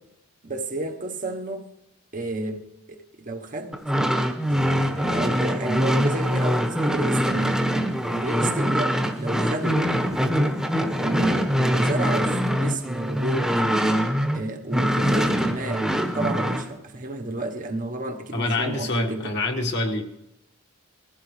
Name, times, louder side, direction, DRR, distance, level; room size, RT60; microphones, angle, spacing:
voice 1, 0.4-1.7 2.1-3.8 4.5-7.6 8.1-9.8 11.0-13.5 14.3-19.3, right 2 dB, 40° right, 1.1 m, -31 dB
sound 1, 3.7-14.4 14.7-16.6, equal, 5° right, 1.1 m, -23 dB
voice 2, 18.3-20.0, left 2 dB, 55° left, 1.5 m, -26 dB
21.0 x 15.0 x 3.2 m
head